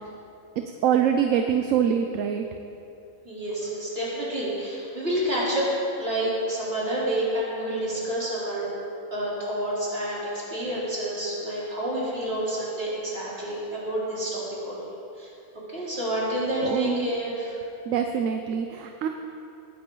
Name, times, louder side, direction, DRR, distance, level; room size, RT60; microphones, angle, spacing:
voice 1, 0.8-2.4 16.6-17.1 17.9-19.1, right 8 dB, 65° right, 5 dB, 1.0 m, -24 dB
voice 2, 3.3-5.7 6.0-8.7 9.1-14.8 15.2-15.3 15.7-17.6, right 1 dB, 40° right, -7 dB, 3.8 m, -29 dB
19.5 x 10.5 x 3.9 m, 2.7 s
omnidirectional pair, 1.5 m